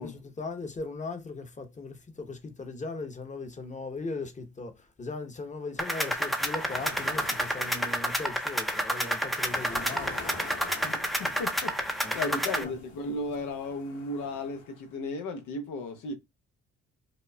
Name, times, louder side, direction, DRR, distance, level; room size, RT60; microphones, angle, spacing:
voice 1, 0.0-10.2 12.0-12.7, left 3 dB, 25° left, 0.8 m, -38 dB
sound 1, 5.7-14.9, left 3 dB, 70° left, 1.8 m, -47 dB
sound 2, 5.8-12.6, equal, ahead, 0.5 m, -30 dB
voice 2, 10.8-16.1, left 2 dB, 85° left, 0.8 m, -35 dB
5.1 x 2.0 x 2.2 m
cardioid pair, 90°, 30 cm